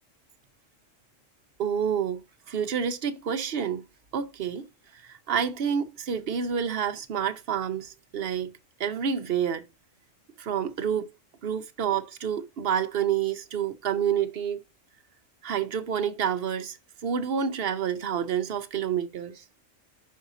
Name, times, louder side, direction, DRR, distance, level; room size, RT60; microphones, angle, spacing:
voice 1, 1.6-2.2 2.5-3.8 4.1-4.7 4.9-8.5 8.8-9.7 10.4-11.1 11.4-14.6 15.4-16.8 17.0-19.4, right 8 dB, 55° right, 0.9 m, -28 dB
5.6 x 5.2 x 3.9 m
omnidirectional pair, 1.4 m